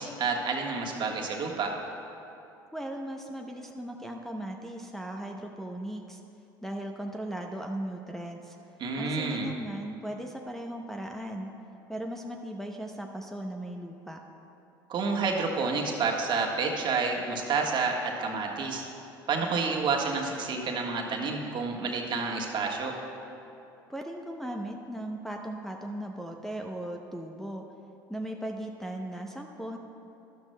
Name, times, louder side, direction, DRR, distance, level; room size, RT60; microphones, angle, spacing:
voice 1, 0.0-1.7 8.8-9.5 14.9-18.8 19.3-23.0, right 4 dB, 45° right, 0 dB, 1.4 m, -29 dB
voice 2, 2.7-6.2 6.6-8.6 8.9-11.5 11.9-14.2 23.9-27.6 28.1-29.8, right 1 dB, 5° left, 1 dB, 0.7 m, -37 dB
12.0 x 12.0 x 2.2 m, 2.8 s
hypercardioid pair, 70°, 11 cm